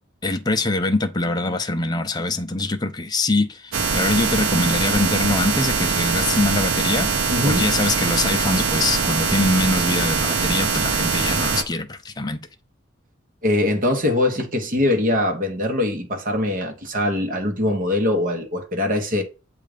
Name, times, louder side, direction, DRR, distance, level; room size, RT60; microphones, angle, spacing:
voice 1, 0.2-7.1 7.5-12.4, left 2 dB, 20° left, 0.5 m, -23 dB
sound 1, 3.7-11.6, right 5 dB, 70° right, 0.7 m, -22 dB
voice 2, 7.3-7.7 11.3-11.5 13.4-19.2, left 1 dB, 40° right, 1.2 m, -22 dB
7.5 x 2.5 x 5.0 m
head